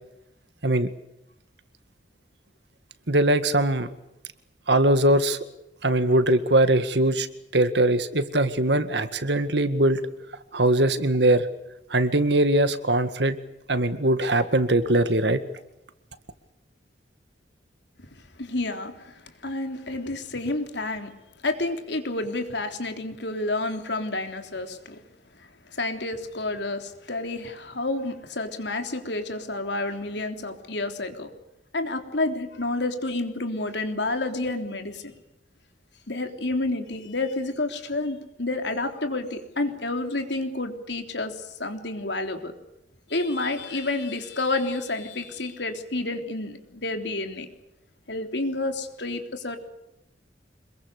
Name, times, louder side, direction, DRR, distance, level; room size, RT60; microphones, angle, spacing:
voice 1, 3.1-3.9 4.7-5.4 5.8-7.3 7.5-10.0 10.5-11.5 11.9-13.4 13.7-15.4, right 1 dB, 70° right, 11 dB, 1.9 m, -21 dB
voice 2, 18.1-21.1 21.4-25.0 25.4-31.3 31.7-35.1 36.1-42.5 43.1-47.5 48.1-49.6, left 2 dB, 75° left, 6 dB, 3.5 m, -30 dB
26.5 x 22.5 x 6.7 m, 0.89 s
head